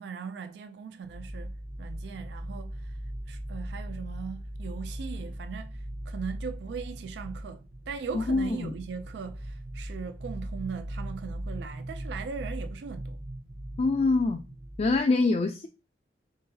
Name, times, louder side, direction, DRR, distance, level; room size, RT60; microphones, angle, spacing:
voice 1, 0.0-2.9 3.3-5.8 6.1-13.2, right 6 dB, 70° right, 0.3 m, -39 dB
sound 1, 1.0-15.0, right 1 dB, 35° right, 0.9 m, -39 dB
voice 2, 8.1-8.7 13.8-14.4 14.8-15.7, left 3 dB, 35° left, 0.3 m, -25 dB
3.8 x 3.8 x 2.7 m
head